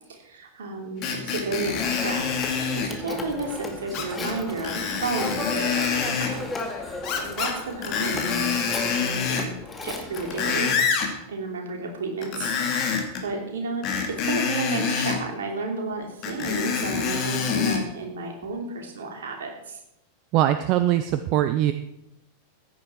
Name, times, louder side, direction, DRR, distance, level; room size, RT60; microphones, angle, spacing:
voice 1, 0.1-8.6 9.0-9.5 9.8-10.7 11.3-12.5 13.2-19.8, right 3 dB, 65° right, 2 dB, 3.0 m, -32 dB
Screech, 1.0-2.9 3.9-4.3 4.6-6.3 7.0-7.6 7.8-9.5 10.0-11.1 12.2-13.2 13.8-15.2 16.2-17.8 18.4-18.5, left 6 dB, 35° left, 2.5 m, -26 dB
Telephone, 1.8-10.9, left 3 dB, 15° left, 2.1 m, -35 dB
voice 2, 20.3-21.7, right 12 dB, 40° right, 10 dB, 0.7 m, -21 dB
15.0 x 10.0 x 4.5 m, 0.83 s
figure-of-eight pair, 90°, 0 cm